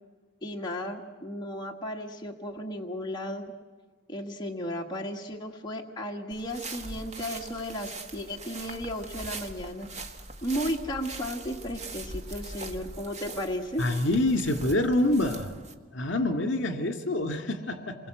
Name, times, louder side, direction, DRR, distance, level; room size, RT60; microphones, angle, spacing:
voice 1, 0.4-3.5 4.1-9.9 10.4-13.8, equal, 20° left, 0 dB, 1.6 m, -34 dB
sound 1, 6.3-15.7, right 2 dB, 35° right, 1.5 m, -41 dB
voice 2, 13.8-15.5 15.9-18.1, left 1 dB, 65° left, 6 dB, 2.2 m, -26 dB
28.0 x 21.5 x 8.0 m, 1.5 s
head